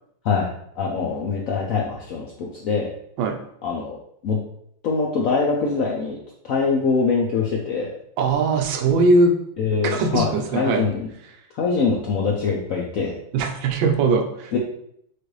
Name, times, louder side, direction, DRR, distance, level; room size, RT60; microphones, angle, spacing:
voice 1, 0.8-2.9 3.6-4.0 4.2-4.4 4.8-6.1 6.4-7.9 9.6-11.1 11.6-13.1 14.5-14.6, left 5 dB, 80° left, -2 dB, 0.7 m, -23 dB
voice 2, 8.2-9.3 9.8-10.8 13.3-14.6, right 3 dB, 85° right, 4 dB, 1.4 m, -20 dB
6.2 x 2.5 x 3.1 m, 0.71 s
omnidirectional pair, 2.1 m